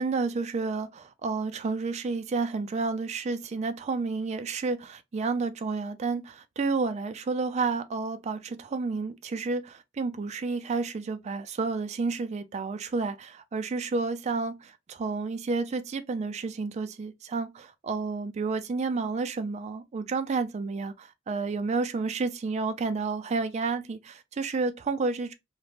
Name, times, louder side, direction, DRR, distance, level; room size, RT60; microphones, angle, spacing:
voice 1, 0.0-25.3, right 4 dB, 35° right, 0.3 m, -30 dB
2.4 x 2.1 x 3.3 m
head